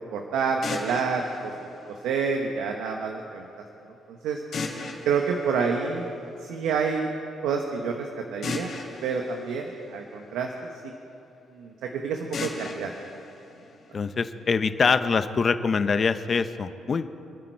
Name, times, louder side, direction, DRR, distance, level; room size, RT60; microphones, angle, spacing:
voice 1, 0.0-1.5 1.9-3.5 4.1-4.4 5.1-6.1 6.4-7.1 7.4-8.7 9.0-10.5 10.8-10.9 11.6-12.9, right 5 dB, 90° right, 2 dB, 1.1 m, -28 dB
sound 1, 0.6-2.6 4.5-6.5 8.4-10.6 12.3-14.3, left 4 dB, 60° left, 3.1 m, -38 dB
voice 2, 13.9-17.1, left 5 dB, 40° left, 11 dB, 0.8 m, -24 dB
26.5 x 9.4 x 4.6 m, 2.8 s
cardioid pair, 90°, 0 cm